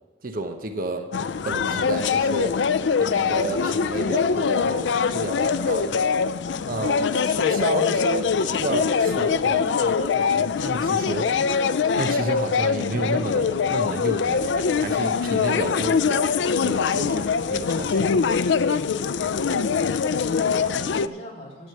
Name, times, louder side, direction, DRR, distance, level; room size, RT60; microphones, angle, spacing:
voice 1, 0.2-1.1 1.4-2.5 3.0-6.1 6.7-11.3 11.6-16.3 16.5-18.1, right 2 dB, 50° right, 6 dB, 0.9 m, -31 dB
sound 1, 1.1-21.1, left 5 dB, 75° left, 0.4 m, -23 dB
voice 2, 20.2-21.7, equal, 35° left, -4 dB, 3.5 m, -41 dB
10.5 x 7.6 x 8.0 m, 1.2 s
head